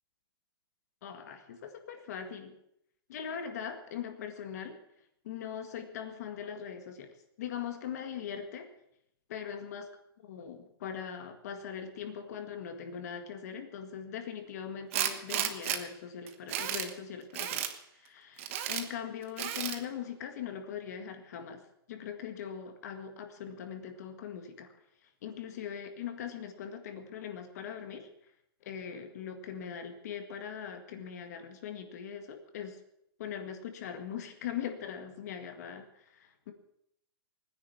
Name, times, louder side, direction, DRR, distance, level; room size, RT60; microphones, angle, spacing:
voice 1, 1.0-2.6 3.1-4.8 5.2-8.7 9.3-9.8 10.2-21.6 21.9-24.7 25.2-28.1 28.6-32.8 33.2-36.5, left 8 dB, 40° left, 6 dB, 1.8 m, -41 dB
Tools, 14.9-15.8 16.3-16.9 17.3-17.7 18.4-18.8 19.4-19.8, right 11 dB, 30° right, 1.2 m, -33 dB
20.0 x 10.0 x 7.1 m, 0.74 s
hypercardioid pair, 175°, 13 cm